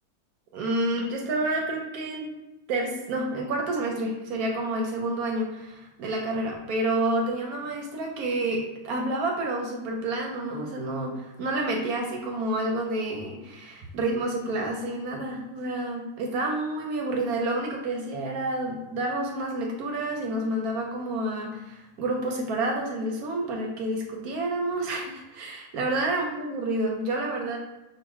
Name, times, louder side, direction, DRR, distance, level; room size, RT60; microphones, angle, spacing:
voice 1, 0.5-2.3 2.7-27.6, right 2 dB, 70° right, 0 dB, 0.9 m, -29 dB
5.6 x 2.1 x 3.0 m, 1.0 s
omnidirectional pair, 2.2 m